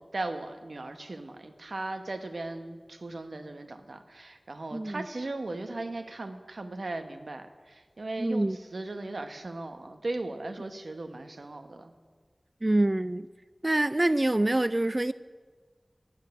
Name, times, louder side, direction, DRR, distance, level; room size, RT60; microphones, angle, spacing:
voice 1, 0.0-11.9, right 2 dB, 85° right, 8 dB, 1.1 m, -37 dB
voice 2, 4.7-5.0 8.2-8.6 12.6-13.2 13.6-15.1, right 1 dB, 35° right, 15 dB, 0.4 m, -25 dB
12.0 x 9.0 x 9.3 m, 1.5 s
wide cardioid pair, 55°, 0 cm